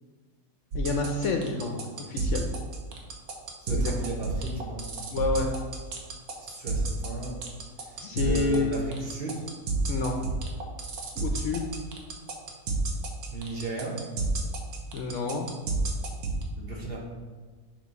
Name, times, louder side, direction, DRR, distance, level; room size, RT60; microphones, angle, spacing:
voice 1, 0.7-2.5 3.7-3.9 5.1-5.5 8.0-9.1 9.9-10.2 11.2-11.6 14.9-15.5, left 4 dB, 65° left, 3 dB, 0.9 m, -29 dB
sound 1, 0.7-16.4, right 4 dB, 75° right, 1.3 m, -31 dB
voice 2, 3.6-4.8 6.5-7.4 7.8-9.4 13.3-14.0 16.6-17.0, right 3 dB, 45° right, -2 dB, 1.1 m, -35 dB
7.0 x 3.1 x 5.3 m, 1.4 s
omnidirectional pair, 1.6 m